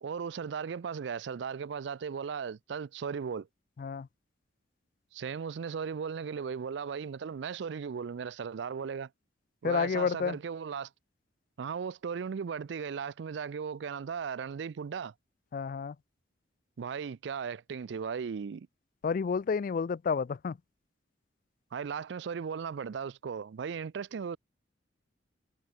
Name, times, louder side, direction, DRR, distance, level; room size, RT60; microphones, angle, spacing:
voice 1, 0.0-3.5 5.1-9.1 9.6-10.9 11.6-15.1 16.8-18.7 21.7-24.4, right 6 dB, 65° right, 0.4 m, -37 dB
voice 2, 3.8-4.1 9.6-10.4 15.5-16.0 19.0-20.6, left 5 dB, 45° left, 0.3 m, -30 dB
head